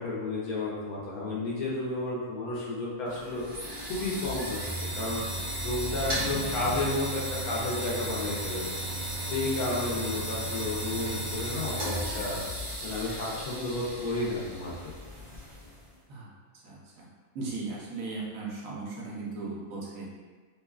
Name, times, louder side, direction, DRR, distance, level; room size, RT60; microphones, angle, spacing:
voice 1, 0.0-3.5 3.8-5.2 5.6-8.8 9.3-12.4 12.8-14.9, left 2 dB, 85° left, -6 dB, 1.1 m, -32 dB
sound 1, 3.1-15.9, right 1 dB, 25° right, 0.6 m, -35 dB
voice 2, 16.6-17.1 17.3-20.1, right 3 dB, 70° right, -4 dB, 1.0 m, -37 dB
2.9 x 2.2 x 2.3 m, 1.4 s
omnidirectional pair, 1.5 m